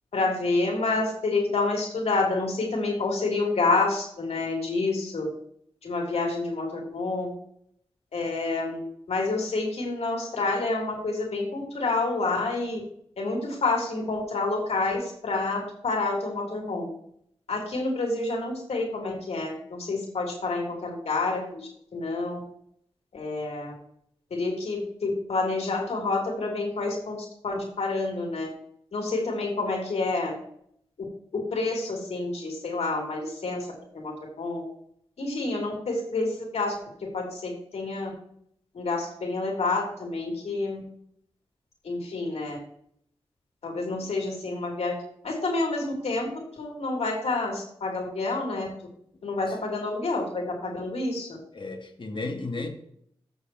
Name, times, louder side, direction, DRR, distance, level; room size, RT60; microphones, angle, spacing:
voice 1, 0.1-5.3 5.8-7.3 8.1-12.8 13.2-16.9 17.5-21.6 21.9-22.4 23.1-23.7 24.3-28.5 28.9-30.4 31.5-33.7 33.9-34.6 35.2-36.7 37.1-38.1 38.8-40.8 41.9-42.6 43.6-45.0 45.2-46.3 46.6-48.7 49.2-51.3, left 3 dB, 75° left, 3.3 m, -28 dB
voice 2, 51.5-52.7, left 3 dB, 50° left, 2.0 m, -34 dB
15.5 x 6.4 x 3.1 m
cardioid pair, 50°, 11 cm